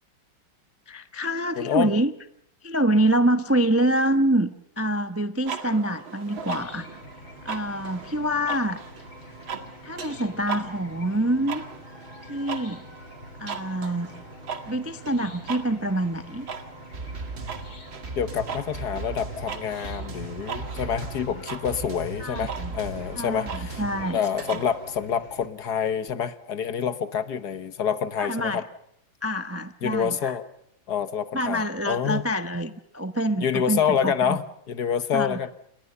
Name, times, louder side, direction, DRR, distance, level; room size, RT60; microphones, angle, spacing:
voice 1, 0.9-2.1 2.6-6.9 7.4-8.8 9.8-11.6 12.3-12.8 13.4-14.1 14.7-16.5 22.2-22.8 23.1-24.2 28.2-28.6 29.2-30.4 31.3-34.4 35.1-35.4, right 1 dB, 10° right, 10 dB, 0.6 m, -26 dB
voice 2, 1.6-1.9 18.2-23.8 24.1-28.6 29.8-30.4 30.9-32.2 33.4-35.5, left 8 dB, 60° left, 13 dB, 1.6 m, -27 dB
sound 1, 5.5-25.0, right 6 dB, 90° right, 2.9 m, -39 dB
Chicken rooster / Cricket, 6.4-25.5, left 2 dB, 85° left, 3.9 m, -46 dB
sound 2, 16.9-24.1, right 3 dB, 35° right, 1.6 m, -37 dB
28.5 x 21.5 x 6.8 m, 0.72 s
omnidirectional pair, 2.1 m